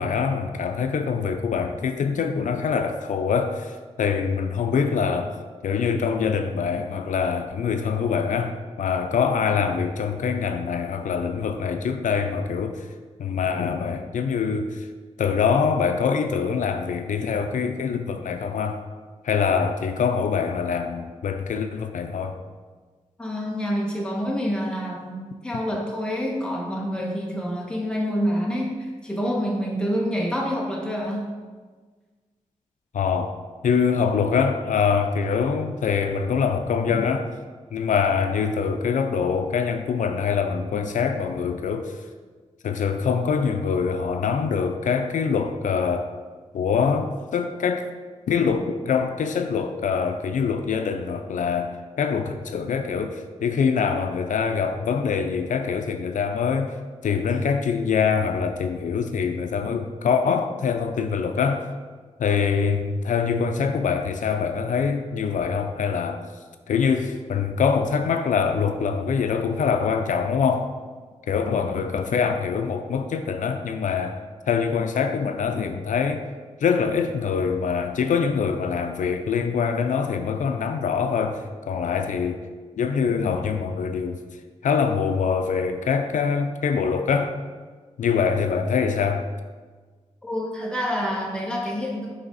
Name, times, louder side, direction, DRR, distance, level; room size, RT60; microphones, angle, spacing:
voice 1, 0.0-5.4 5.6-12.9 13.2-14.9 15.2-18.8 19.2-22.4 32.9-33.4 33.6-37.3 37.7-42.0 42.6-46.1 46.5-47.9 48.3-56.8 57.0-61.7 62.2-66.2 66.7-70.7 71.3-74.2 74.5-76.2 76.6-82.4 82.8-84.2 84.6-87.4 88.0-89.3, left 6 dB, 90° left, 7 dB, 0.5 m, -24 dB
voice 2, 23.2-31.2 90.2-92.1, equal, 5° left, -3 dB, 1.4 m, -27 dB
8.9 x 3.5 x 4.0 m, 1.4 s
wide cardioid pair, 90°, 13 cm